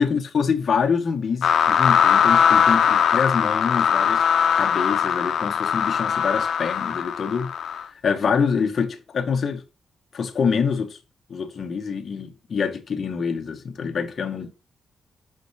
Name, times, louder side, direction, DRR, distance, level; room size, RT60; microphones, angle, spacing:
voice 1, 0.0-4.2 4.6-7.5 8.0-9.6 10.1-11.0 11.3-14.5, left 6 dB, 45° left, 1.1 m, -25 dB
sound 1, 1.4-7.8, left 8 dB, 70° left, 0.7 m, -20 dB
5.6 x 5.1 x 4.0 m
wide cardioid pair, 155°, 0 cm